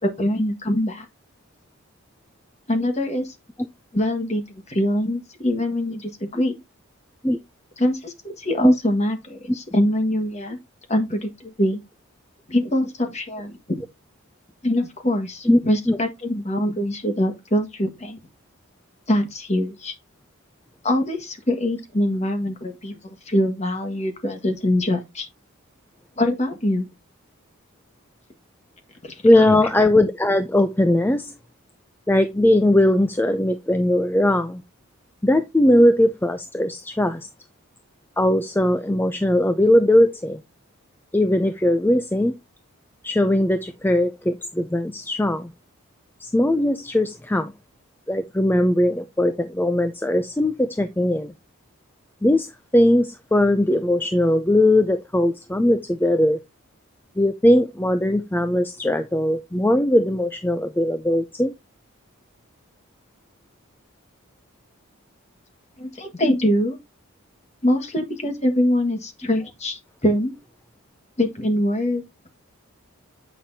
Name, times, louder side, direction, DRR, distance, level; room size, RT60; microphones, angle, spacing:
voice 1, 0.0-1.0 2.7-3.3 3.9-6.6 7.8-10.6 10.9-11.8 12.5-13.8 14.6-18.2 19.1-19.9 20.8-23.0 23.3-25.3 26.2-26.9 29.0-29.6 65.8-66.8 67.6-70.4 71.2-72.3, left 1 dB, 30° left, 1.5 m, -23 dB
voice 2, 29.2-31.3 32.1-34.6 35.2-37.3 38.2-40.4 41.1-42.4 43.0-45.5 46.2-47.5 48.1-51.3 52.2-56.4 57.2-61.5, left 1 dB, 10° left, 0.4 m, -19 dB
8.2 x 6.0 x 2.7 m
head